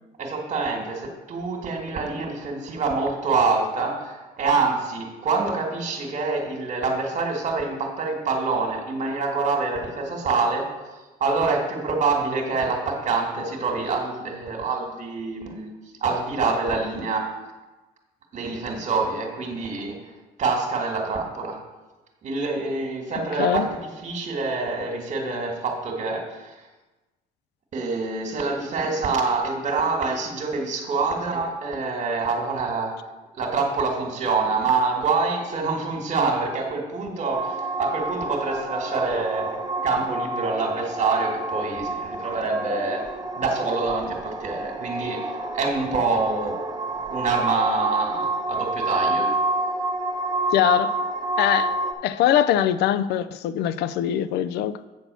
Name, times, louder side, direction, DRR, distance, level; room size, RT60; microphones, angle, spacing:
voice 1, 0.2-10.7 11.2-15.7 16.0-17.2 18.3-20.0 20.4-21.6 22.2-26.5 27.7-32.9 33.4-43.0 43.4-45.3 45.5-46.5 47.1-49.3, right 4 dB, 45° right, 1.9 m, -26 dB
sound 1, 37.3-51.9, right 2 dB, 25° right, 0.9 m, -28 dB
voice 2, 50.5-51.0 51.4-51.8 52.0-54.8, left 11 dB, 80° left, 0.4 m, -22 dB
8.5 x 4.1 x 6.8 m
cardioid pair, 110°, 17 cm